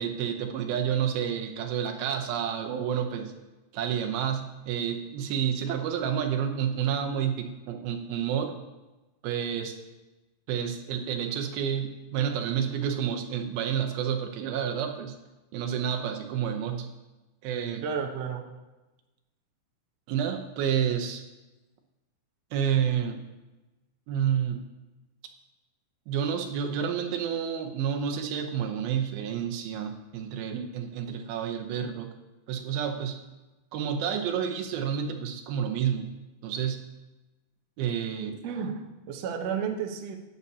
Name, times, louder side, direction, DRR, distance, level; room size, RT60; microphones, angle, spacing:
voice 1, 0.0-3.3 3.7-8.6 9.2-9.8 10.5-15.2 15.5-16.9 17.4-17.8 20.1-21.2 22.5-23.2 24.1-24.6 26.1-32.1 32.5-33.3 33.7-36.1 36.4-36.9 37.8-38.4, right 8 dB, 85° right, 5 dB, 2.7 m, -29 dB
voice 2, 17.8-18.5 38.4-40.2, right 6 dB, 70° right, 3 dB, 1.6 m, -32 dB
18.5 x 6.8 x 2.8 m, 1.1 s
omnidirectional pair, 4.2 m